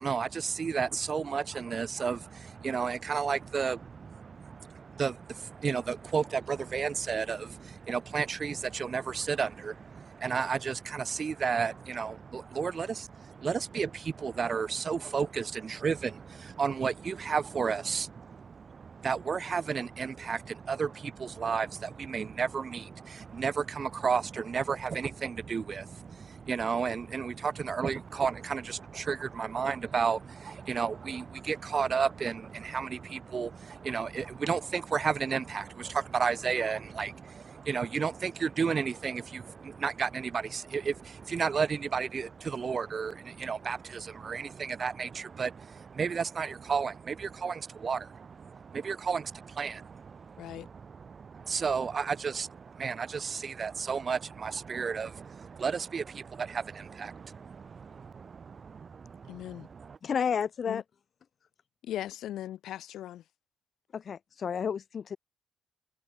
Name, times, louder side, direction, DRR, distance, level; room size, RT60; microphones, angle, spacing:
voice 1, 0.0-60.0, right 6 dB, 35° right, 1.3 m, -32 dB
voice 2, 59.3-59.7 60.7-60.8 61.8-63.2, left 12 dB, 75° left, 7.2 m, -38 dB
voice 3, 60.0-60.8 63.9-65.2, left 7 dB, 40° left, 1.8 m, -31 dB
cardioid pair, 150°, 0 cm